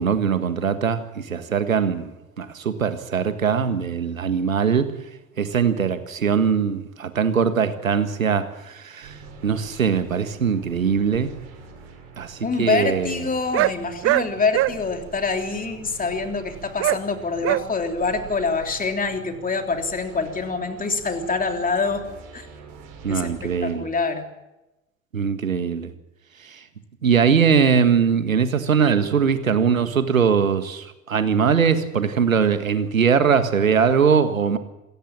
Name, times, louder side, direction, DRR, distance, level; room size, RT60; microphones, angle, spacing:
voice 1, 0.0-2.1 2.4-4.9 5.4-11.3 12.2-13.1 23.0-23.8 25.1-25.9 26.4-26.6 27.0-34.6, right 6 dB, 80° right, 11 dB, 1.7 m, -21 dB
sound 1, 9.0-23.7, right 4 dB, 55° right, 6.3 m, -45 dB
voice 2, 12.4-22.1 22.3-22.5 23.1-24.3, left 4 dB, 20° left, 5 dB, 3.4 m, -25 dB
sound 2, 13.5-13.7 14.0-14.3 14.5-14.7 16.8-17.0 17.4-17.6, right 17 dB, 35° right, 0.7 m, -20 dB
27.0 x 14.5 x 7.5 m, 0.96 s
figure-of-eight pair, 70°, 40 cm